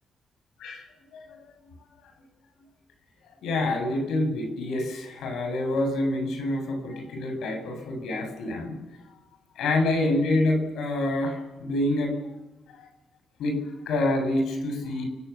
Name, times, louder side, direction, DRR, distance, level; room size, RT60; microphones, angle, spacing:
voice 1, 0.6-1.4 3.4-8.8 9.6-12.1 12.8-12.9 13.4-15.0, left 2 dB, 90° left, 5 dB, 7.4 m, -27 dB
30.0 x 17.5 x 7.3 m, 1.0 s
cardioid pair, 105°, 0 cm